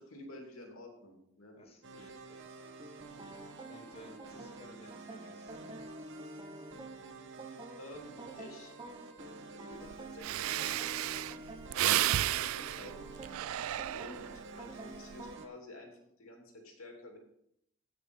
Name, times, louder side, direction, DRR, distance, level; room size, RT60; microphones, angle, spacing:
voice 1, 0.0-1.6 2.0-2.1 7.8-8.7 9.4-13.0 13.9-14.3 14.5-17.2, left 1 dB, 80° left, 1 dB, 2.7 m, -51 dB
voice 2, 1.5-2.8 3.1-5.9 13.1-13.6, equal, 30° left, 1 dB, 2.1 m, -56 dB
sound 1, 1.8-15.5, right 2 dB, 60° right, 1.0 m, -50 dB
sound 2, 2.8-15.6, right 2 dB, 25° right, 0.9 m, -51 dB
Breathing, 9.9-10.0 10.2-14.5 14.9-15.3, right 13 dB, 80° right, 0.3 m, -33 dB
16.0 x 6.5 x 3.6 m, 0.76 s
head